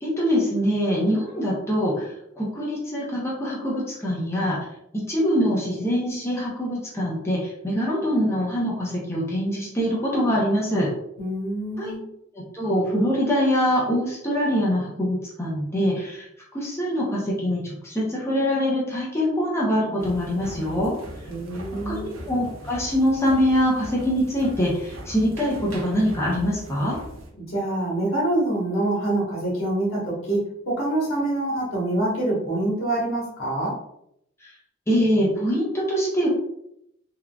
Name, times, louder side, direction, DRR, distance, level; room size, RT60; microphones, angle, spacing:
voice 1, 0.0-4.6 4.9-10.9 11.8-11.9 12.5-16.3 16.5-21.0 21.9-27.0 34.4-34.5 34.9-36.3, equal, 15° left, -5 dB, 0.7 m, -24 dB
voice 2, 11.2-12.0 21.3-22.1 27.5-33.8, right 1 dB, 75° left, -5 dB, 1.3 m, -25 dB
sound 1, 20.0-27.3, equal, 75° right, 0.6 m, -40 dB
3.6 x 2.4 x 2.3 m, 0.77 s
head